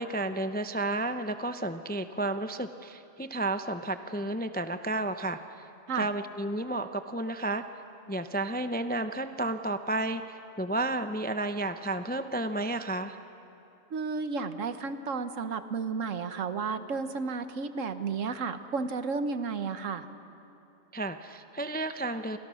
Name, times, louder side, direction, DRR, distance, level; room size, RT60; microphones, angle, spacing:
voice 1, 0.0-5.6 5.9-7.6 8.1-13.2 20.9-22.4, right 2 dB, 10° left, 9 dB, 0.4 m, -32 dB
voice 2, 13.9-20.1, right 4 dB, 70° right, 10 dB, 1.5 m, -32 dB
30.0 x 26.5 x 6.4 m, 2.9 s
omnidirectional pair, 1.4 m